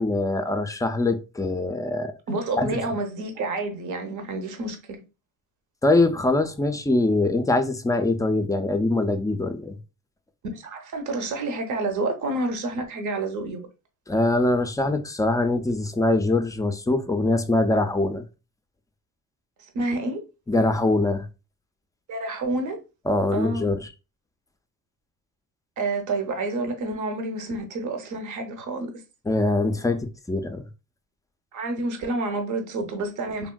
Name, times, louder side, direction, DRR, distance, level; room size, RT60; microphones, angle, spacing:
voice 1, 0.0-2.1 2.6-2.7 5.8-9.8 14.1-18.2 20.5-21.3 23.1-23.8 29.3-30.6, left 2 dB, 10° left, 0.4 m, -23 dB
voice 2, 2.3-5.0 10.5-13.6 19.7-20.2 22.1-22.8 23.3-23.7 25.8-28.9 31.5-33.5, right 2 dB, 60° right, 0.8 m, -29 dB
3.5 x 2.4 x 2.2 m
cardioid pair, 90°, 34 cm